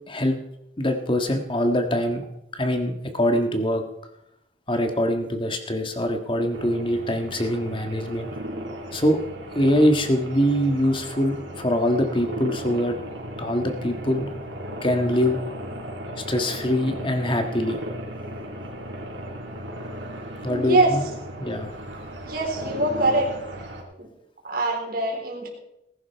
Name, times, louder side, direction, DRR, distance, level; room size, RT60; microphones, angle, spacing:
voice 1, 0.1-0.4 0.8-2.2 2.5-3.8 4.7-8.3 8.9-9.2 9.5-13.0 13.4-14.3 14.8-15.4 16.2-17.8 20.4-21.0 21.4-21.7, equal, 25° left, 6 dB, 1.6 m, -23 dB
sound 1, 6.5-23.8, equal, 85° right, 4.2 m, -36 dB
voice 2, 20.5-21.0 22.2-23.3 24.0-24.1 24.4-25.5, right 2 dB, 50° right, 0 dB, 3.9 m, -23 dB
19.5 x 11.0 x 4.6 m, 0.85 s
head